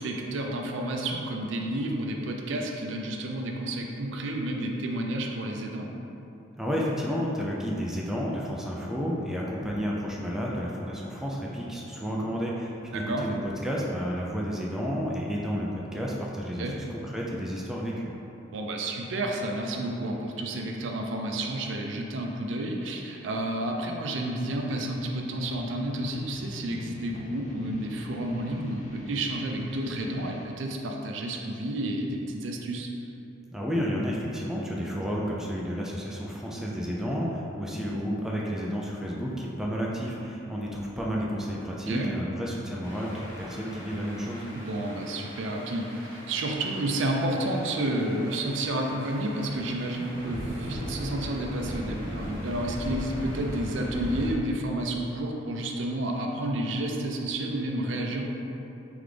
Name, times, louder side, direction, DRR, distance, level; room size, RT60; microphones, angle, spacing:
voice 1, 0.0-5.9 12.9-13.3 16.6-16.8 18.5-32.9 41.9-42.1 44.5-58.2, right 1 dB, 70° right, 1 dB, 0.4 m, -30 dB
voice 2, 6.6-18.1 33.5-44.4, equal, 5° right, -4 dB, 0.4 m, -31 dB
sound 1, 25.3-30.4, left 2 dB, 40° left, 0.6 m, -42 dB
sound 2, 42.8-54.3, equal, 85° left, 1.2 m, -39 dB
3.8 x 3.4 x 3.2 m, 2.9 s
head